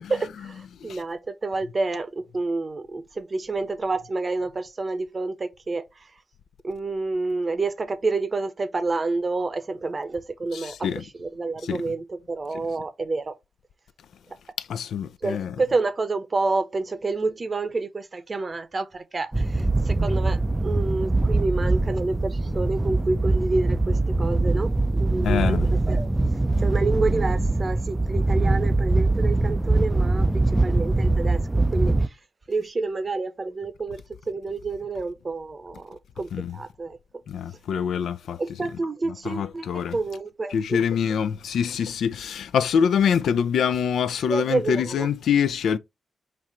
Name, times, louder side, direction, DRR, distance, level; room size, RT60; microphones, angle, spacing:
voice 1, 0.0-6.1 6.6-13.4 15.2-26.1 26.6-31.4 31.7-32.2 32.5-37.0 38.4-40.8 44.3-45.1, right 3 dB, 50° right, 0.9 m, -29 dB
voice 2, 10.5-11.0 11.6-11.8 14.6-15.5 25.2-25.7 26.5-26.6 36.3-36.6 37.3-38.4 39.2-40.0 40.5-45.8, left 7 dB, 80° left, 0.3 m, -25 dB
sound 1, 19.3-32.1, right 2 dB, 20° right, 0.4 m, -22 dB
4.3 x 2.5 x 4.3 m
supercardioid pair, 40°, 0 cm